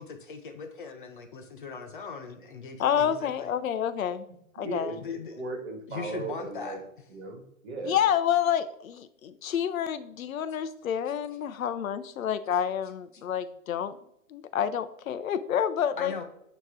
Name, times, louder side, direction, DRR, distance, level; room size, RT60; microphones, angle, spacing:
voice 1, 0.0-3.5 5.0-5.3 5.9-6.8 16.0-16.2, left 5 dB, 40° left, 5 dB, 0.7 m, -39 dB
voice 2, 2.8-4.3 4.6-5.0 7.8-14.0 14.3-16.1, left 9 dB, 80° left, 13 dB, 0.7 m, -28 dB
voice 3, 4.6-5.0 5.3-6.8 7.1-8.0, right 3 dB, 55° right, 3 dB, 2.0 m, -36 dB
9.2 x 3.1 x 3.6 m, 0.75 s
hypercardioid pair, 170°, 40 cm